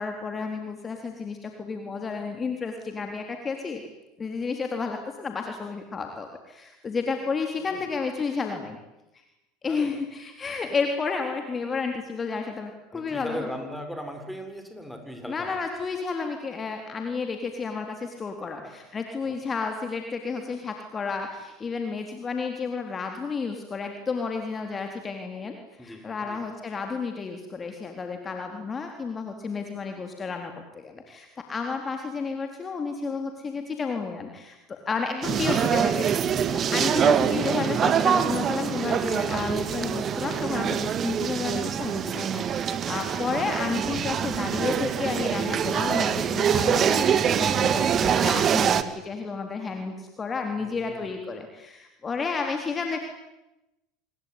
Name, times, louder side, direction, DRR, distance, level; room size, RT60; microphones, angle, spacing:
voice 1, 0.0-3.8 4.2-8.8 9.6-13.4 15.3-36.1 36.7-53.0, left 4 dB, 25° left, 4 dB, 3.8 m, -31 dB
voice 2, 7.6-7.9 9.7-10.0 12.9-15.6 18.6-18.8 19.2-19.4 25.8-26.4 50.6-51.1, equal, ahead, 5 dB, 6.7 m, -39 dB
sound 1, 35.2-48.8, right 8 dB, 35° right, 2.0 m, -24 dB
26.5 x 22.0 x 9.7 m, 0.97 s
figure-of-eight pair, 75°, 0 cm